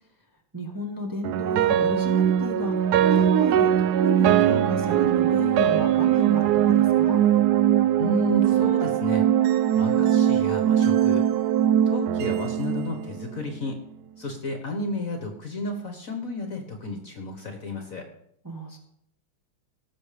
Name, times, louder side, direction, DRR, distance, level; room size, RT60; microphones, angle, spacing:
voice 1, 0.5-7.2 18.4-18.8, left 1 dB, 10° right, 0 dB, 1.5 m, -33 dB
sound 1, 1.2-13.5, right 10 dB, 75° right, 0.9 m, -21 dB
voice 2, 8.0-9.2 9.7-11.2 11.9-13.8 14.2-18.1, left 1 dB, 45° left, 5 dB, 1.5 m, -32 dB
18.0 x 7.2 x 5.1 m, 0.73 s
omnidirectional pair, 2.2 m